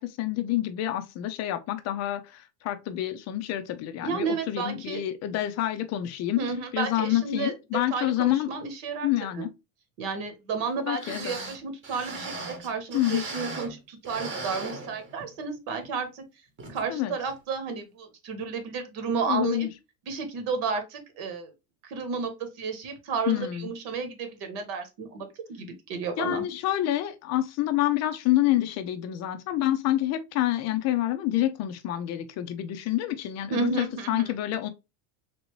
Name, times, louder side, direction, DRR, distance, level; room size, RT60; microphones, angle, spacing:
voice 1, 0.0-6.4 6.7-8.5 9.0-9.5 10.9-11.3 12.9-13.2 16.9-17.1 19.3-19.7 23.3-23.7 26.2-34.7, left 14 dB, 40° left, 0.4 m, -27 dB
voice 2, 4.0-5.0 6.4-9.1 9.4-9.5 10.0-16.2 16.7-19.7 20.1-21.5 21.8-26.4 33.5-34.3, right 4 dB, 65° right, 1.2 m, -32 dB
sound 1, 10.7-10.8 11.0-13.8 14.0-15.4 15.8-15.9 16.6-16.8 17.3-17.4, right 3 dB, 25° right, 1.0 m, -38 dB
3.3 x 2.7 x 3.0 m
supercardioid pair, 135°, 44 cm